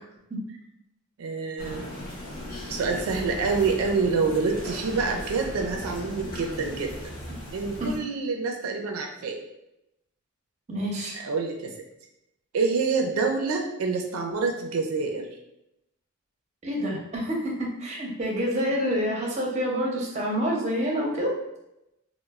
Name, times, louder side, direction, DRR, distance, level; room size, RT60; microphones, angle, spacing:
voice 1, 1.2-1.9 2.7-7.1 7.5-9.4 11.2-11.7 12.5-15.3, right 4 dB, 85° right, 3 dB, 0.4 m, -27 dB
sound 1, 1.6-8.0, left 1 dB, 40° left, 0.7 m, -37 dB
voice 2, 10.7-11.2 16.6-21.3, equal, 30° right, -2 dB, 0.6 m, -27 dB
3.0 x 2.0 x 2.3 m, 0.87 s
head